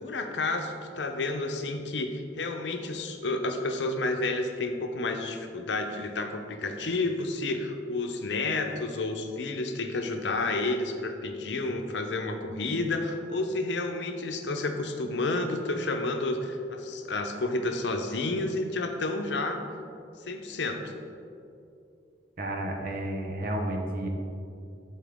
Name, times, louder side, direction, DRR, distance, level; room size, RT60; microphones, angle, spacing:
voice 1, 0.0-19.6 20.3-20.8, left 2 dB, 80° left, 5 dB, 0.7 m, -30 dB
voice 2, 22.4-24.1, right 1 dB, 55° right, 2 dB, 1.0 m, -31 dB
11.5 x 4.2 x 3.6 m, 2.6 s
head